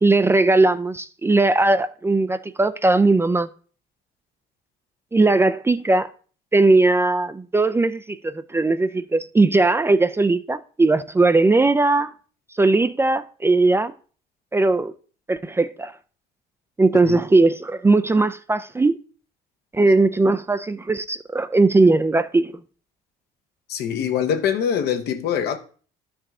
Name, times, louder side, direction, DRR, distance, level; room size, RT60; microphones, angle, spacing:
voice 1, 0.0-3.5 5.1-6.1 6.5-12.1 12.6-13.9 14.5-14.9 15.3-15.9 16.8-19.0 19.7-22.5, right 3 dB, 15° right, 0.4 m, -18 dB
voice 2, 23.7-25.6, left 8 dB, 75° left, 1.1 m, -23 dB
12.0 x 4.8 x 3.6 m
cardioid pair, 110°, 17 cm